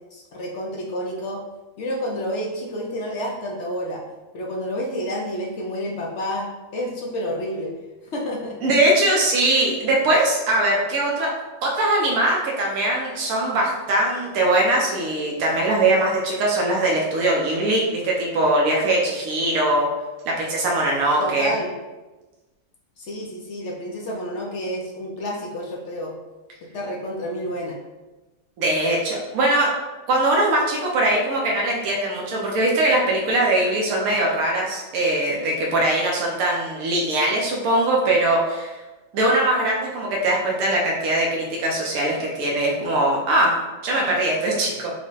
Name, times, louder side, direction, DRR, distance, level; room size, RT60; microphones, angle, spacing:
voice 1, 0.1-1.4 1.8-4.0 4.3-7.7 8.0-8.6 21.2-21.7 23.0-26.1 26.7-27.8, equal, 65° left, -2 dB, 0.8 m, -29 dB
voice 2, 8.6-11.3 11.6-19.9 20.3-21.5 28.6-29.7 30.1-38.8 39.1-44.9, right 1 dB, 75° right, -2 dB, 1.2 m, -21 dB
4.7 x 2.1 x 3.9 m, 1.2 s
omnidirectional pair, 1.5 m